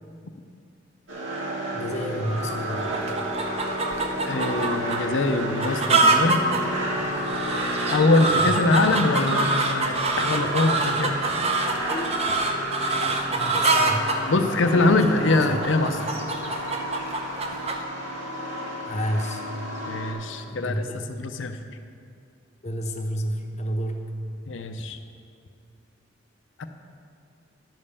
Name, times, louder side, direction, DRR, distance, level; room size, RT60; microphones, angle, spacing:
sound 1, 1.1-20.1, right 1 dB, 80° right, 2.3 m, -31 dB
voice 1, 1.7-3.1 8.4-8.6 11.8-12.3 12.9-14.1 14.6-15.6 18.8-19.4 20.5-21.0 22.6-24.1, equal, 35° left, 3 dB, 0.9 m, -31 dB
sound 2, 2.2-17.8, right 3 dB, 35° right, 0.7 m, -26 dB
voice 2, 4.2-6.4 7.9-11.2 14.3-16.0 19.9-21.6 24.5-25.0 26.6-26.7, left 2 dB, 70° left, 7 dB, 0.6 m, -23 dB
11.0 x 5.4 x 6.9 m, 2.4 s
head